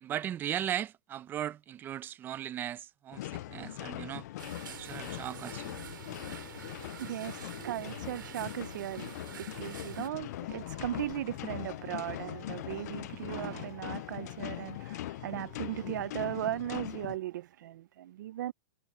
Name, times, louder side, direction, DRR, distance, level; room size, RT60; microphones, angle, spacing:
voice 1, 0.0-4.3 4.7-5.8, right 10 dB, 20° right, 0.7 m, -37 dB
sound 1, 3.1-17.2, left 15 dB, 55° left, 0.4 m, -41 dB
sound 2, 4.4-10.1, right 9 dB, 85° right, 3.9 m, -47 dB
voice 2, 6.6-18.5, right 13 dB, 65° right, 0.5 m, -37 dB
hypercardioid pair, 150°, 11 cm